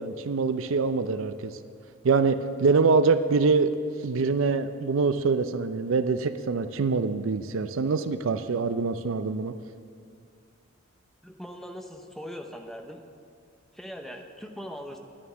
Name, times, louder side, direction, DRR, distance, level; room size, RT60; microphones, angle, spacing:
voice 1, 0.0-1.5 2.0-3.7 4.0-9.5, right 4 dB, 65° right, 11 dB, 0.4 m, -24 dB
voice 2, 11.2-13.0 13.7-15.0, equal, ahead, 4 dB, 0.6 m, -40 dB
11.0 x 9.9 x 6.1 m, 2.2 s
head